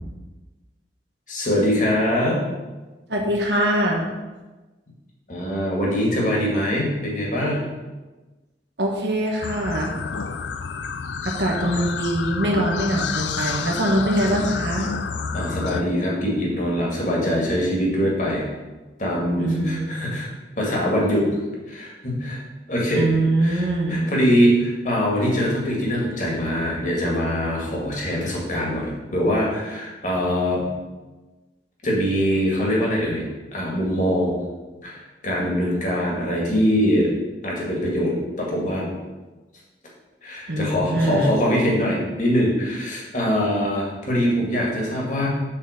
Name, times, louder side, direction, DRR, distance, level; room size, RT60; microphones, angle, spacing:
voice 1, 1.3-2.4 5.3-7.7 14.3-14.4 15.3-18.5 19.0-20.3 20.6-21.3 21.7-22.4 22.7-23.1 23.4-30.7 31.8-33.2 33.5-34.4 34.8-37.1 37.4-38.9 40.2-45.3, equal, 45° left, -3 dB, 2.3 m, -23 dB
voice 2, 3.1-4.1 8.8-9.9 11.2-14.9 19.4-20.2 22.9-24.0 40.5-41.3, right 1 dB, 80° right, -1 dB, 1.5 m, -23 dB
sound 1, 9.4-15.8, left 5 dB, 90° left, 0.5 m, -29 dB
7.9 x 4.3 x 6.6 m, 1.2 s
head